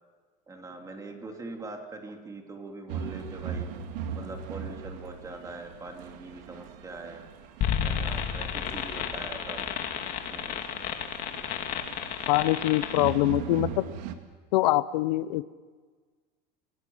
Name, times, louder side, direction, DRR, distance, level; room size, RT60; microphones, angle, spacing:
voice 1, 0.5-3.7 4.1-7.3 7.8-9.7 10.0-10.5 13.6-13.8, right 2 dB, 15° right, 3 dB, 3.3 m, -42 dB
sound 1, 2.9-14.1, right 7 dB, 80° right, 2.2 m, -40 dB
sound 2, 7.6-13.1, left 8 dB, 40° left, 2.5 m, -32 dB
voice 2, 12.3-13.8 14.5-15.4, left 17 dB, 90° left, 15 dB, 0.9 m, -24 dB
28.5 x 18.0 x 7.4 m, 1.4 s
supercardioid pair, 145°, 21 cm